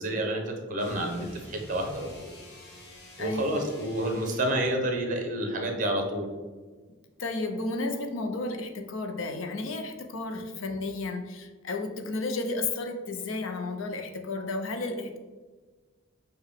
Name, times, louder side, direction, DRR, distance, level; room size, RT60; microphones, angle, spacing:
voice 1, 0.0-2.4 3.2-6.3, right 1 dB, 40° right, 3 dB, 0.8 m, -29 dB
sound 1, 0.7-4.7, left 1 dB, 55° left, 1.1 m, -48 dB
voice 2, 3.2-3.7 7.2-15.2, left 3 dB, 75° left, 5 dB, 0.5 m, -33 dB
6.5 x 2.2 x 3.5 m, 1.4 s
head